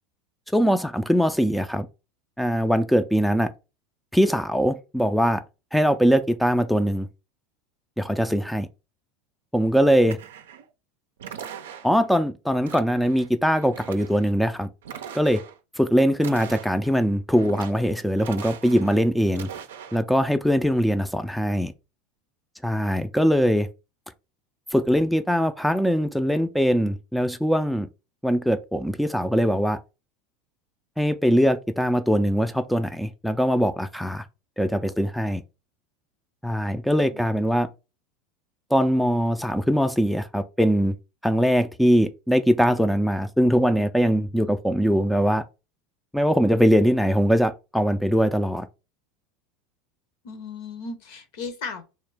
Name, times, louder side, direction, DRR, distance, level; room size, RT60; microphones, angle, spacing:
voice 1, 0.5-1.9 2.4-3.5 4.1-5.4 5.7-7.1 8.0-8.7 9.5-10.2 11.8-14.7 15.1-15.4 15.8-19.5 19.9-21.7 22.6-23.7 24.7-27.9 28.2-29.8 31.0-34.2 34.6-35.4 36.4-37.7 38.7-41.0 41.2-45.4 46.1-48.7, equal, ahead, 0.3 m, -21 dB
sound 1, 10.1-10.7 11.2-12.1 12.7-13.3 13.6-14.3 14.8-15.6 16.1-17.0 17.3-17.9 18.2-19.0 19.3-20.0, right 8 dB, 85° right, 0.4 m, -40 dB
voice 2, 50.2-51.8, left 4 dB, 70° left, 0.9 m, -36 dB
3.1 x 2.9 x 3.4 m
hypercardioid pair, 95°, 0 cm